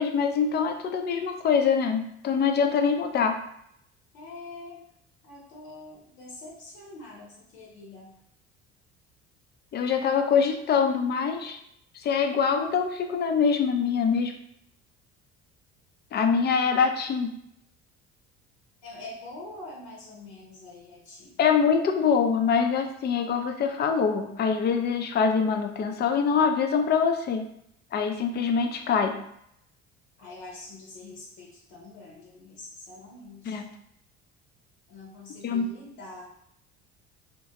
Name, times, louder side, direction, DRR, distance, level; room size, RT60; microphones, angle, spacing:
voice 1, 0.0-3.4 9.7-11.6 11.9-14.3 16.1-17.3 21.4-27.5 27.9-29.2 33.5-33.7 35.4-35.7, left 6 dB, 30° left, 5 dB, 0.4 m, -24 dB
voice 2, 4.1-4.8 5.2-8.1 18.8-21.4 30.2-33.6 34.9-36.2, left 2 dB, 70° left, -3 dB, 0.8 m, -45 dB
2.8 x 2.3 x 2.8 m, 0.75 s
figure-of-eight pair, 55°, 35 cm